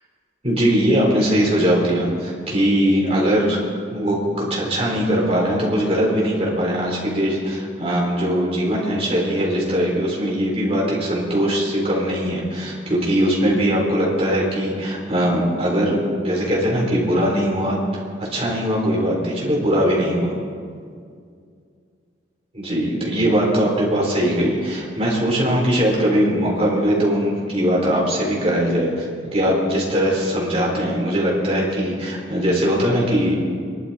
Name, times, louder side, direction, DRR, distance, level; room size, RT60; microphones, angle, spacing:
voice 1, 0.4-3.6 3.9-20.3 22.5-29.1 29.3-33.4, equal, 30° right, -3 dB, 4.0 m, -20 dB
23.5 x 11.5 x 4.3 m, 2.2 s
head